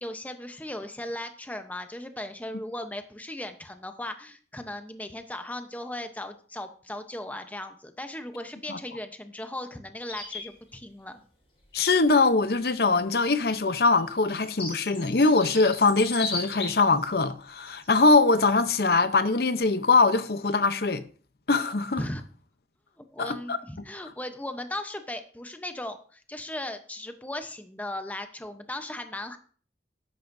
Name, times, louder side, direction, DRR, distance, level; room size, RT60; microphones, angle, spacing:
voice 1, 0.0-11.2 22.0-22.2 23.0-29.4, left 1 dB, 10° left, 0.8 m, -37 dB
sound 1, 10.1-10.5 12.0-12.1 13.3-17.0 17.6-17.9 18.5-18.7, left 3 dB, 35° left, 5.0 m, -36 dB
voice 2, 11.7-21.0 21.5-22.0 23.2-23.6, left 3 dB, 60° left, 0.7 m, -22 dB
13.5 x 10.5 x 2.7 m
head